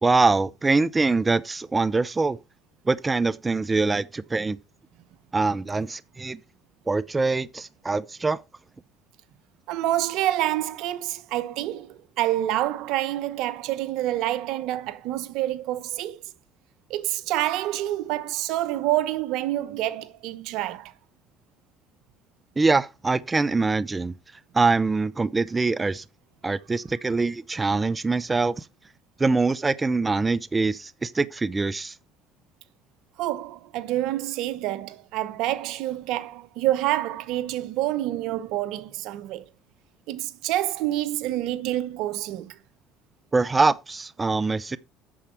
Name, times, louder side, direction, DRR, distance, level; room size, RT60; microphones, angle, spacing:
voice 1, 0.0-2.4 2.9-4.6 5.3-6.4 6.9-8.4 22.6-24.1 24.5-26.0 26.4-28.7 29.2-32.0 43.3-44.8, right 3 dB, 20° right, 0.6 m, -23 dB
voice 2, 9.7-16.2 16.9-20.9 33.2-39.5 40.1-42.6, right 14 dB, 70° right, 0.9 m, -27 dB
8.6 x 7.1 x 4.5 m
supercardioid pair, 75°, 0 cm